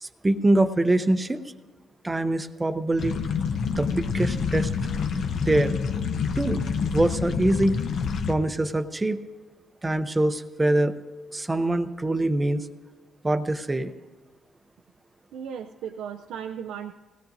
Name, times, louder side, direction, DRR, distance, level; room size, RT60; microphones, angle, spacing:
voice 1, 0.0-1.4 2.0-3.2 3.7-4.7 5.3-5.8 6.4-6.6 6.9-7.8 8.3-9.2 9.8-11.0 11.3-12.7 13.2-13.9, right 1 dB, 20° right, 9 dB, 0.7 m, -24 dB
sound 1, 3.0-8.3, left 6 dB, 65° left, 0.8 m, -27 dB
voice 2, 15.3-16.9, right 8 dB, 85° right, 6 dB, 0.4 m, -36 dB
19.5 x 16.5 x 2.6 m, 1.3 s
cardioid pair, 90°, 0 cm